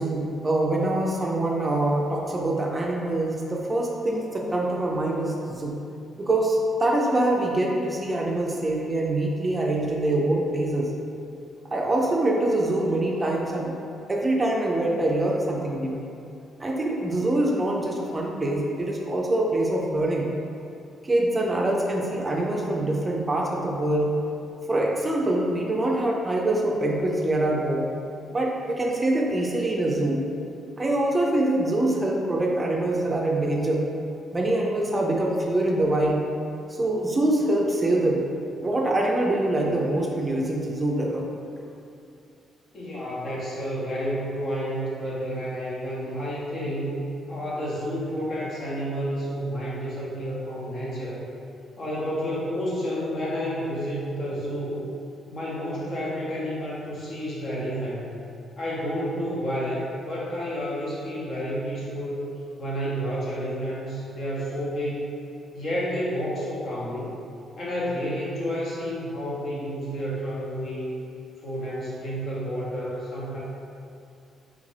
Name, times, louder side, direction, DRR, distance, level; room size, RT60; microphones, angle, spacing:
voice 1, 0.0-5.7 6.2-10.9 11.7-13.7 14.1-16.0 16.6-20.3 21.0-24.1 24.7-27.9 28.3-30.2 30.8-33.9 34.3-36.3 36.8-38.3 38.5-41.2, right 1 dB, 20° right, -1 dB, 0.4 m, -24 dB
voice 2, 42.7-47.0 47.3-51.2 51.8-54.8 55.3-58.2 58.6-62.2 62.6-65.1 65.5-67.1 67.6-70.9 71.4-73.4, equal, 50° left, -6 dB, 1.0 m, -30 dB
3.5 x 2.5 x 3.2 m, 2.6 s
cardioid pair, 90°, 0 cm